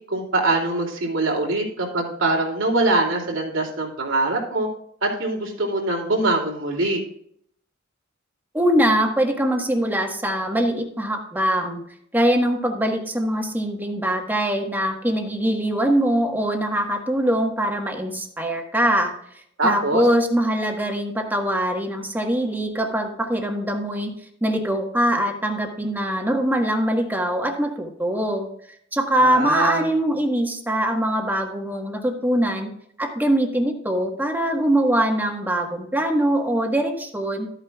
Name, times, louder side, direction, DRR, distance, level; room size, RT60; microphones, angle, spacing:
voice 1, 0.1-4.7 5.0-7.0 19.6-20.0 29.2-29.9, right 2 dB, 85° right, 0 dB, 2.8 m, -23 dB
voice 2, 8.5-11.8 12.1-19.1 19.6-24.2 24.4-28.5 28.9-32.7 33.0-37.5, right 1 dB, 10° right, 3 dB, 1.4 m, -22 dB
13.0 x 9.0 x 2.4 m, 0.68 s
head